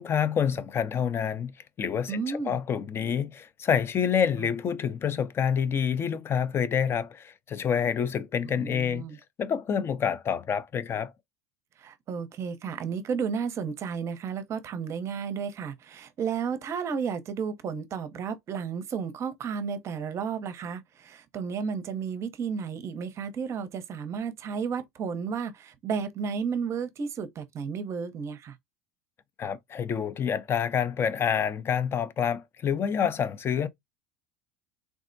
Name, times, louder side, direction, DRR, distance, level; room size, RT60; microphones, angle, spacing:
voice 1, 0.0-1.5 1.8-9.1 9.4-11.1 29.4-33.7, left 7 dB, 30° left, 0.4 m, -27 dB
voice 2, 2.1-2.6 8.4-9.2 11.8-28.5 33.6-33.7, right 6 dB, 35° right, 0.6 m, -33 dB
3.5 x 2.0 x 2.5 m
supercardioid pair, 110°, 8 cm